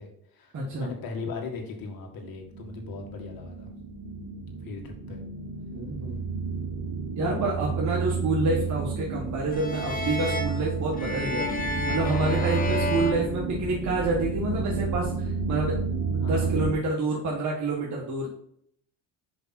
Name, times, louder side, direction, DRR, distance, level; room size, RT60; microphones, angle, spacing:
voice 1, 0.0-3.7 4.6-5.2 12.4-12.8 13.1-13.2 16.2-16.6, left 4 dB, 55° left, 2 dB, 2.0 m, -39 dB
voice 2, 0.5-0.9 5.7-6.2 7.2-11.5 11.8-18.3, right 2 dB, 45° right, -3 dB, 1.7 m, -28 dB
sound 1, 2.2-16.7, right 4 dB, 60° right, 1.4 m, -31 dB
sound 2, 9.5-14.1, left 2 dB, 20° left, 1.2 m, -32 dB
5.4 x 5.3 x 4.3 m, 0.68 s
supercardioid pair, 85°, 41 cm